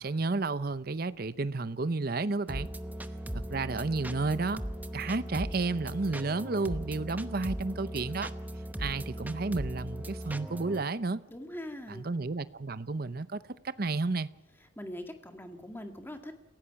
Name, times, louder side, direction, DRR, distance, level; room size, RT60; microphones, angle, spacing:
voice 1, 0.0-2.7 3.5-4.6 4.9-8.3 8.8-11.2 11.9-14.3, right 3 dB, 45° right, 0.7 m, -31 dB
sound 1, 2.5-10.8, equal, 10° right, 0.8 m, -38 dB
voice 2, 11.3-12.1 14.8-16.3, left 1 dB, 10° left, 1.8 m, -42 dB
28.5 x 16.5 x 5.9 m
head